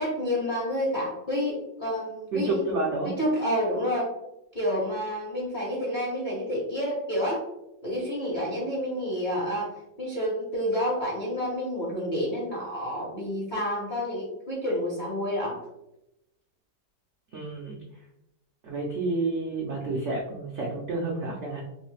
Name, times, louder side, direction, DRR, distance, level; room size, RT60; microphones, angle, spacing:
voice 1, 0.0-2.8 3.0-4.1 4.5-7.4 7.8-15.6, equal, 40° left, -5 dB, 0.7 m, -29 dB
voice 2, 2.3-3.1 17.3-17.8 18.6-21.6, right 2 dB, 75° right, -2 dB, 0.6 m, -29 dB
3.2 x 3.1 x 3.1 m, 0.89 s
omnidirectional pair, 2.0 m